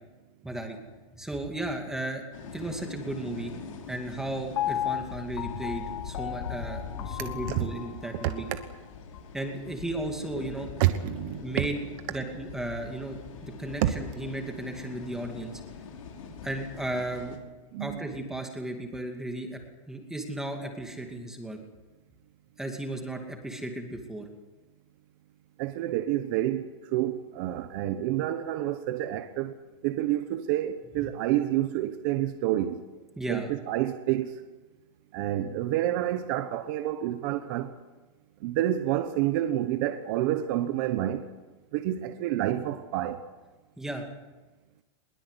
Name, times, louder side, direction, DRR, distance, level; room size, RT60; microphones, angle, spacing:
voice 1, 0.4-0.8 1.1-2.2 2.5-3.5 3.9-8.5 9.3-10.7 11.4-11.8 12.1-15.5 16.4-17.4 17.8-19.6 19.9-21.6 22.6-24.3 31.0-31.1 33.2-33.5 43.8-44.0, right 1 dB, 5° right, 2.3 m, -35 dB
sound 1, 2.3-17.4, left 6 dB, 85° left, 5.9 m, -42 dB
Piano, 4.6-8.6 9.1-9.2, left 12 dB, 60° left, 1.0 m, -35 dB
voice 2, 10.8-11.4 13.8-13.9 17.7-18.0 25.6-29.5 29.8-32.8 33.3-34.3 35.1-37.7 38.4-41.2 41.7-43.2, right 13 dB, 40° right, 1.2 m, -28 dB
22.0 x 21.5 x 8.3 m
supercardioid pair, 170°, 17 cm